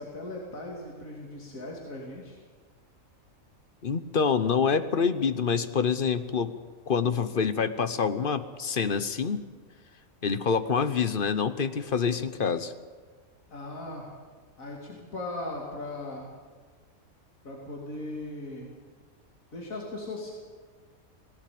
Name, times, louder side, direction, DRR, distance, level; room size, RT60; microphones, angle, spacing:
voice 1, 0.0-2.4 13.5-14.1 14.6-16.3 17.4-18.7 19.5-20.3, left 2 dB, 70° left, -2 dB, 3.2 m, -38 dB
voice 2, 3.8-6.5 6.9-9.4 10.2-12.7, left 6 dB, 45° left, 12 dB, 1.0 m, -26 dB
19.0 x 16.5 x 8.6 m, 1.5 s
omnidirectional pair, 1.5 m